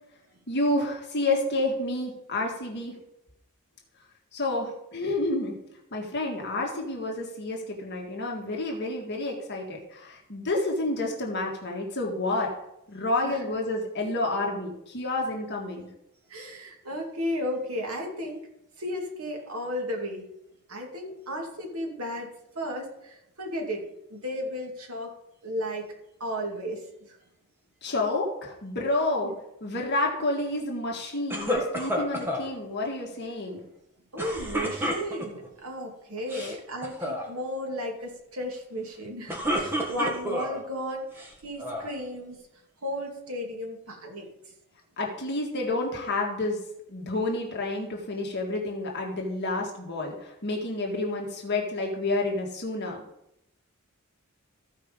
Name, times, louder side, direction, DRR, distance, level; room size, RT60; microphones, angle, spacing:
voice 1, 0.5-3.0 4.3-5.6 5.9-12.5 12.9-15.9 27.8-29.3 29.6-33.6 36.4-36.5 45.0-46.6 46.9-53.0, left 2 dB, 50° left, -1 dB, 1.8 m, -29 dB
voice 2, 16.3-18.4 18.8-20.2 20.7-22.3 22.5-23.8 24.1-25.1 25.4-25.9 26.2-27.2 29.2-29.4 34.1-42.4 42.8-44.5, equal, 75° right, 1 dB, 2.5 m, -34 dB
sound 1, 31.3-32.5 34.2-35.5 36.2-36.5 36.8-37.2 39.1-40.6 41.2-41.9, equal, 10° right, 1.7 m, -30 dB
15.0 x 5.0 x 5.3 m, 0.82 s
head